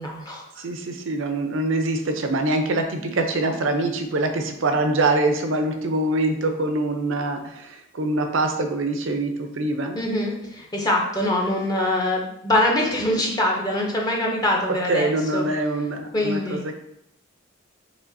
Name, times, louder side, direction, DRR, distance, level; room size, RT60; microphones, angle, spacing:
voice 1, 0.0-0.6 10.0-15.5 16.1-16.7, left 1 dB, 20° left, -1 dB, 0.5 m, -24 dB
voice 2, 0.6-10.0 14.9-16.6, right 2 dB, 70° right, 5 dB, 0.6 m, -24 dB
5.0 x 3.7 x 2.6 m, 0.79 s
head